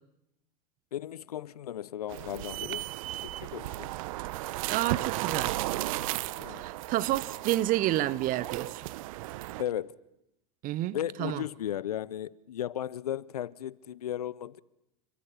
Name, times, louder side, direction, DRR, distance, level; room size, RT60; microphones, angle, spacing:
voice 1, 0.9-2.9 3.2-3.9 6.4-6.6 9.6-9.9 10.9-14.6, left 11 dB, 80° left, 0.8 m, -35 dB
sound 1, 2.1-9.6, right 17 dB, 65° right, 1.0 m, -35 dB
voice 2, 4.7-5.5 6.6-8.8 10.6-11.4, right 15 dB, 45° right, 1.2 m, -29 dB
29.5 x 14.5 x 9.9 m
hypercardioid pair, 85°, 19 cm